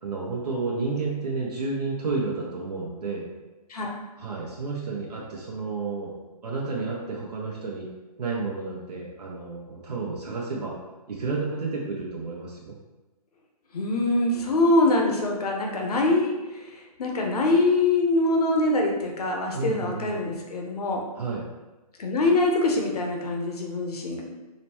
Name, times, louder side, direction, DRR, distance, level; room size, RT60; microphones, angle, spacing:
voice 1, 0.0-3.3 4.2-7.9 8.2-10.7 11.1-12.7 19.5-20.2 21.1-21.4, right 4 dB, 85° right, -3 dB, 0.8 m, -31 dB
voice 2, 13.7-21.0 22.0-24.2, left 2 dB, 70° left, 1 dB, 0.9 m, -24 dB
5.0 x 2.1 x 2.9 m, 1.1 s
hypercardioid pair, 145°, 20 cm